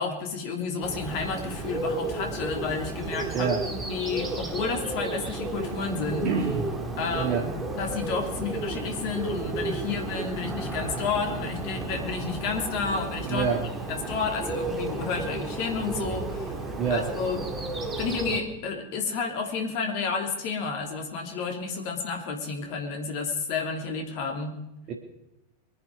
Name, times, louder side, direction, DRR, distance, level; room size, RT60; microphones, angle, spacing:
voice 1, 0.0-6.3 7.0-13.5 13.9-16.6 16.9-17.4 18.0-24.6, left 5 dB, 45° left, 3 dB, 3.1 m, -31 dB
Bird, 0.8-18.4, right 3 dB, 15° right, 2.2 m, -33 dB
voice 2, 3.3-3.7 6.2-6.7 7.1-7.5 13.2-13.7 16.8-17.1 24.9-25.0, right 5 dB, 35° right, 1 dB, 1.9 m, -27 dB
23.0 x 10.5 x 4.9 m, 0.89 s
figure-of-eight pair, 90°, 0 cm